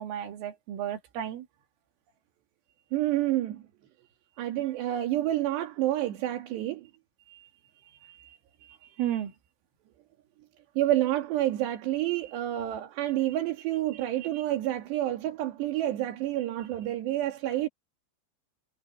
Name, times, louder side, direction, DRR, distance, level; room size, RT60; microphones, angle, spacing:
voice 1, 0.0-1.5 7.3-7.5 8.0-9.3 13.9-14.4, right 11 dB, 80° right, 4.8 m, -35 dB
voice 2, 2.9-3.6 4.4-6.9 10.8-17.7, right 14 dB, 65° right, 4.0 m, -28 dB
omnidirectional pair, 5.7 m